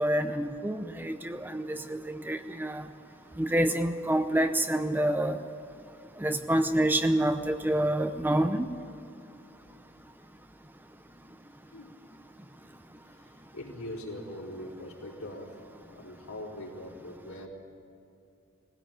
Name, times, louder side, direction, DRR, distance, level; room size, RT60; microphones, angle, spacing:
voice 1, 0.0-2.9 3.4-5.4 6.2-8.7, right 1 dB, 10° right, 8 dB, 0.7 m, -27 dB
voice 2, 3.1-3.5 6.9-7.0 11.7-11.9 13.0-17.5, left 1 dB, 80° left, -2 dB, 4.5 m, -42 dB
20.5 x 16.5 x 9.0 m, 2.7 s
head